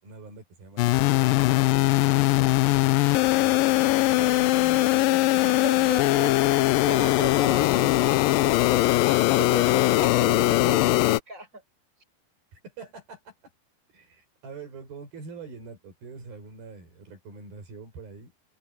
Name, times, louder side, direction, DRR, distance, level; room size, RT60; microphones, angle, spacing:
voice 1, 0.0-2.6 3.4-3.7 4.1-5.9 9.2-9.3 9.7-10.9 12.5-13.5 13.9-18.3, right 4 dB, 80° right, 7.5 m, -44 dB
sound 1, 0.8-11.2, left 18 dB, 80° left, 2.3 m, -21 dB
voice 2, 5.6-8.9 9.3-11.6, right 2 dB, 20° right, 8.2 m, -37 dB
omnidirectional pair, 4.2 m